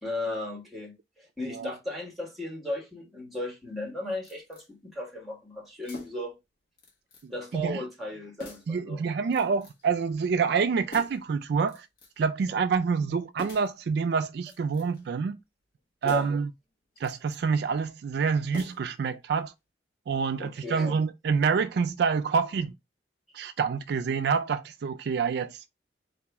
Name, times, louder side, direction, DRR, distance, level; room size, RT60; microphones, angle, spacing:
voice 1, 0.0-6.4 7.3-9.0 16.0-16.3 20.4-21.0, left 1 dB, ahead, 1.4 m, -36 dB
sound 1, 4.2-4.7 5.8-6.3 6.8-7.3 7.5-7.6 8.4-8.8 9.3-9.9 10.9-11.3 11.7-12.3 13.4-13.8 14.4-15.1 16.0-16.5 17.0-17.4 18.5-19.1 19.4-19.5, equal, 60° left, 1.2 m, -46 dB
voice 2, 7.2-7.8 8.7-11.9 12.2-15.4 16.0-16.5 17.0-19.5 20.1-22.7 23.3-25.6, right 5 dB, 60° right, 0.3 m, -27 dB
4.0 x 3.0 x 3.4 m
head